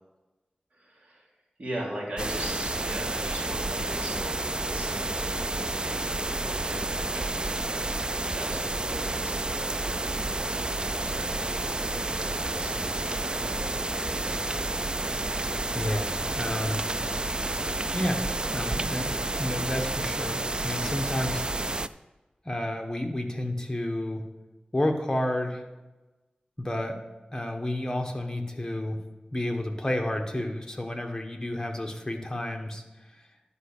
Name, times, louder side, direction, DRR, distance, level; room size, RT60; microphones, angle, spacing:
voice 1, 0.7-1.3 1.6-10.0 10.2-14.2, right 1 dB, 50° right, -4 dB, 3.6 m, -41 dB
sound 1, 2.2-21.9, right 2 dB, 30° right, 0.3 m, -30 dB
voice 2, 15.7-16.8 17.9-21.4 22.4-24.2 24.7-25.6 26.6-27.0 27.3-29.0 29.3-32.8 33.1-33.2, left 1 dB, 20° left, 3 dB, 1.3 m, -31 dB
11.5 x 5.3 x 6.6 m, 1.1 s
wide cardioid pair, 80°, 3 cm